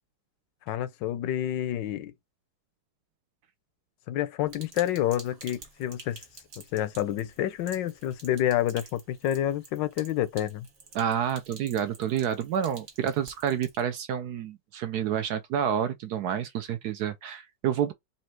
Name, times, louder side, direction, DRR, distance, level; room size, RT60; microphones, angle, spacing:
voice 1, 0.7-2.1 4.1-6.2 6.6-10.7, left 12 dB, 80° left, 1.2 m, -28 dB
Sink (filling or washing), 4.5-13.8, right 4 dB, 40° right, 1.4 m, -50 dB
voice 2, 10.9-17.9, right 9 dB, 70° right, 1.0 m, -29 dB
4.2 x 2.7 x 4.4 m
omnidirectional pair, 2.0 m